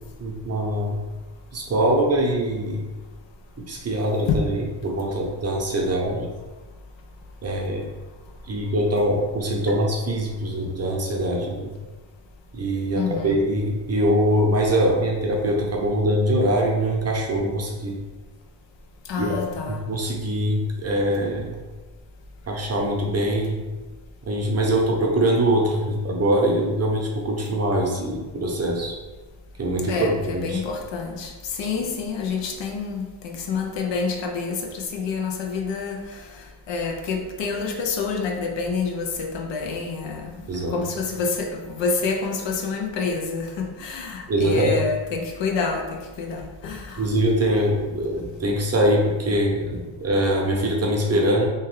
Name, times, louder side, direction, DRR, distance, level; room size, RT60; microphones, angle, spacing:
voice 1, 0.2-1.0 1.5-2.8 3.7-6.3 7.4-7.8 8.5-11.7 12.5-18.0 19.2-21.6 22.5-23.6 24.3-28.9 29.6-30.6 40.5-40.8 44.3-44.7 47.0-51.5, right 1 dB, 35° right, -1 dB, 0.7 m, -23 dB
voice 2, 13.0-13.4 19.1-19.8 29.9-31.3 31.6-36.0 36.7-40.2 40.7-43.5 43.8-46.8, left 4 dB, 70° left, 2 dB, 0.6 m, -27 dB
2.9 x 2.3 x 3.1 m, 1.2 s
cardioid pair, 85°, 47 cm